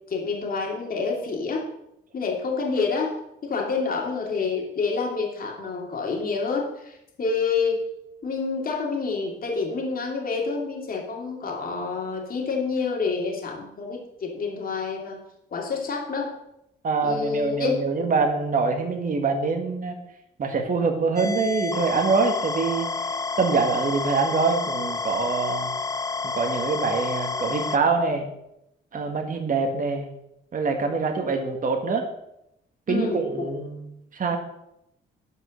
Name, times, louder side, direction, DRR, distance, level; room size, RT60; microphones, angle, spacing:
voice 1, 0.1-1.7 2.1-3.2 3.4-7.8 8.2-15.2 15.5-16.3 17.0-17.8 32.9-33.5, left 4 dB, 45° left, 0 dB, 2.5 m, -28 dB
voice 2, 16.8-20.0 20.4-22.9 23.4-25.7 26.2-28.3 28.9-30.1 30.5-32.1 32.9-34.4, right 4 dB, 45° right, 4 dB, 1.7 m, -24 dB
sound 1, 21.2-27.8, left 4 dB, 15° left, 0.6 m, -29 dB
11.0 x 5.4 x 6.3 m, 0.82 s
cardioid pair, 90°, 20 cm